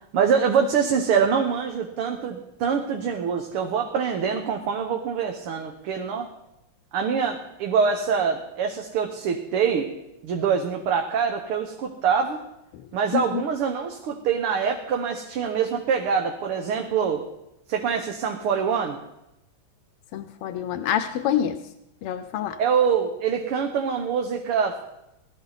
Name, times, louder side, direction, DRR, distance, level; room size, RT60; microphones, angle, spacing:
voice 1, 0.1-6.3 6.9-9.9 10.2-12.4 12.9-17.2 17.7-19.0 22.6-24.8, right 6 dB, 80° right, 3 dB, 2.0 m, -24 dB
voice 2, 20.1-21.6 22.0-22.6, left 10 dB, 90° left, 9 dB, 1.6 m, -26 dB
19.0 x 14.0 x 4.1 m, 0.87 s
omnidirectional pair, 2.4 m